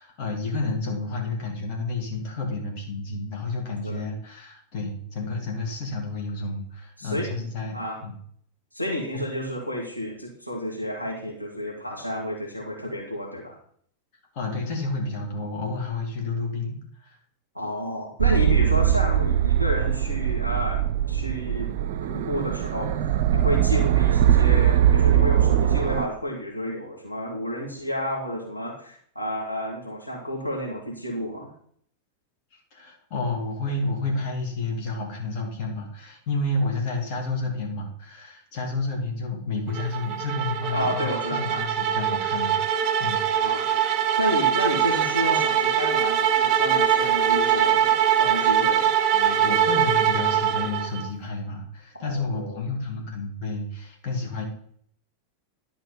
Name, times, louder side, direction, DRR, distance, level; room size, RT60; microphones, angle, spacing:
voice 1, 0.0-8.1 9.1-9.2 14.3-17.1 32.7-43.2 48.6-48.8 49.1-54.4, left 2 dB, 45° left, 0 dB, 2.6 m, -30 dB
voice 2, 7.0-7.3 7.7-8.0 8.7-13.6 17.5-20.8 21.1-21.7 22.1-31.5 40.7-41.7 43.4-43.7 44.2-48.9 52.0-52.6, equal, 90° left, -3 dB, 2.1 m, -31 dB
sound 1, 18.2-26.1, right 10 dB, 55° right, 0.4 m, -21 dB
sound 2, 39.7-51.1, right 9 dB, 35° right, 0.9 m, -22 dB
11.0 x 4.4 x 5.7 m, 0.62 s
figure-of-eight pair, 90°, 0 cm